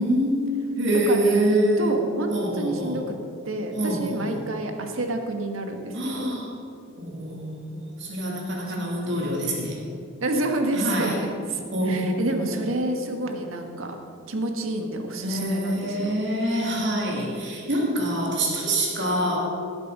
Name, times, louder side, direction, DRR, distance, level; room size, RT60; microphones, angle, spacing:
voice 1, 0.0-2.0 2.3-3.0 3.8-4.4 5.9-6.5 7.0-9.8 10.7-11.1 11.7-12.6 15.2-19.4, right 1 dB, 60° right, -3 dB, 2.8 m, -25 dB
voice 2, 1.1-3.2 3.4-6.3 8.7-9.3 10.2-14.0 14.3-16.2, right 1 dB, 90° right, 4 dB, 1.6 m, -29 dB
18.0 x 8.0 x 5.5 m, 2.4 s
head